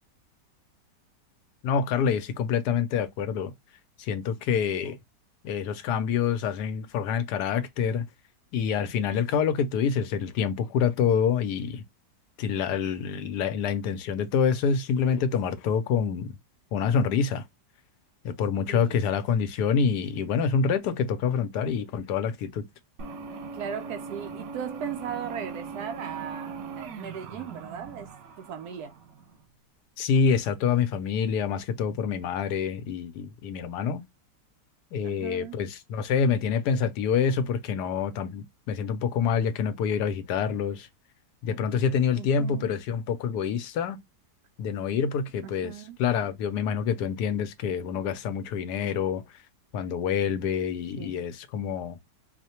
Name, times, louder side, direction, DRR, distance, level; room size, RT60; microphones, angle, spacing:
voice 1, 1.6-3.5 4.0-5.0 5.4-8.1 8.5-11.8 12.4-16.3 16.7-17.4 18.2-22.6 30.0-34.0 34.9-40.9 41.4-44.0 44.6-45.7 46.0-49.2 49.7-52.0, left 6 dB, 75° left, 1.1 m, -26 dB
voice 2, 8.8-9.3 13.1-13.3 18.7-19.1 23.5-28.1 28.4-28.9 35.0-35.6 42.2-42.7 45.4-46.0 51.0-51.2, right 8 dB, 70° right, 1.0 m, -38 dB
sound 1, 23.0-29.4, right 5 dB, 90° right, 1.4 m, -40 dB
4.7 x 2.1 x 2.8 m
omnidirectional pair, 1.8 m